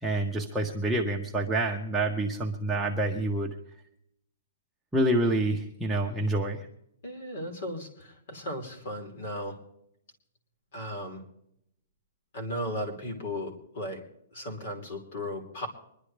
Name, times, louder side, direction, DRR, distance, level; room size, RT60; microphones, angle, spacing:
voice 1, 0.0-3.6 4.9-6.7, right 1 dB, 5° right, -3 dB, 0.7 m, -27 dB
voice 2, 7.0-9.6 10.7-11.2 12.3-14.0 14.3-15.7, equal, 45° left, 4 dB, 2.9 m, -36 dB
24.5 x 11.0 x 3.3 m, 0.76 s
hypercardioid pair, 180°, 0 cm